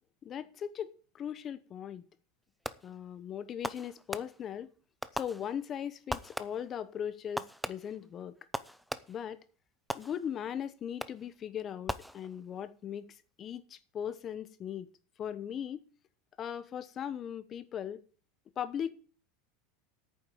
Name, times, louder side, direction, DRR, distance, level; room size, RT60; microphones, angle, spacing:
voice 1, 0.2-2.0 2.8-4.7 5.1-8.3 9.1-9.4 9.9-14.9 15.2-15.8 16.4-18.0 18.6-18.9, left 9 dB, 25° left, 0.9 m, -39 dB
Fireworks, 2.6-3.1 3.6-4.6 5.0-5.8 6.1-6.8 7.4-9.3 9.9-10.5 11.0-11.4 11.9-12.6, equal, ahead, 0.5 m, -40 dB
9.2 x 6.9 x 8.7 m
supercardioid pair, 155°, 0 cm